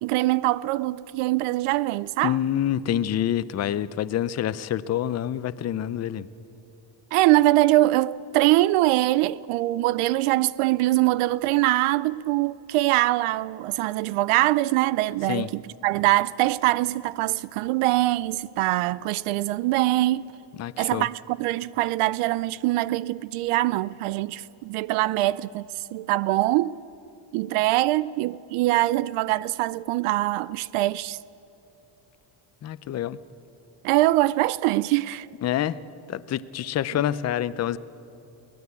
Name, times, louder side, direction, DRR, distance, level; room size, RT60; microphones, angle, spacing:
voice 1, 0.0-2.4 7.1-20.4 20.8-26.8 27.3-31.2 33.8-35.3, right 17 dB, 85° right, 0.6 m, -23 dB
voice 2, 2.2-6.3 15.3-15.5 20.6-21.1 32.6-33.2 35.4-35.8 36.1-37.8, left 11 dB, 35° left, 0.5 m, -27 dB
22.5 x 17.5 x 8.3 m
cardioid pair, 135°, 50 cm